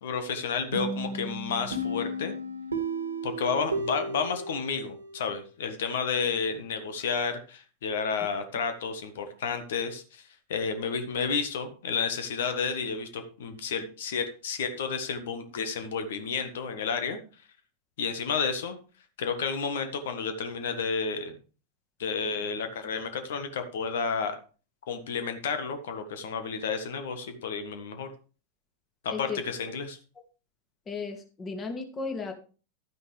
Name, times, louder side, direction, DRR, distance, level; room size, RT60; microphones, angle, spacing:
voice 1, 0.0-2.3 3.2-10.2 10.5-17.2 18.0-18.7 19.2-21.4 22.0-24.4 24.9-28.1 29.0-30.0, left 5 dB, 60° left, 8 dB, 1.5 m, -31 dB
sound 1, 0.7-5.4, right 1 dB, 75° right, 1.6 m, -34 dB
voice 2, 29.1-29.4 30.9-32.3, left 4 dB, 20° left, 4 dB, 2.3 m, -35 dB
12.0 x 9.7 x 3.3 m, 0.36 s
figure-of-eight pair, 90°, 0 cm